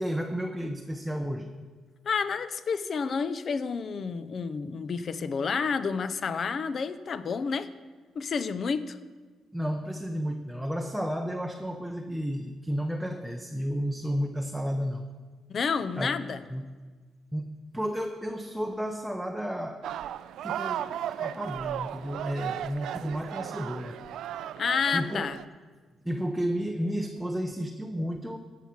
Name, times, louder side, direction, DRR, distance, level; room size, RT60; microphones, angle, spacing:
voice 1, 0.0-1.5 9.5-15.1 16.0-16.2 16.5-16.7 17.3-19.9 20.4-24.0 24.9-25.3 26.0-28.4, equal, ahead, 3 dB, 0.7 m, -32 dB
voice 2, 2.1-7.7 8.2-9.0 15.5-16.4 24.6-25.4, left 5 dB, 50° left, 13 dB, 0.6 m, -30 dB
sound 1, 19.8-25.4, right 11 dB, 80° right, 0.3 m, -35 dB
15.5 x 5.8 x 6.0 m, 1.4 s
cardioid pair, 90°, 0 cm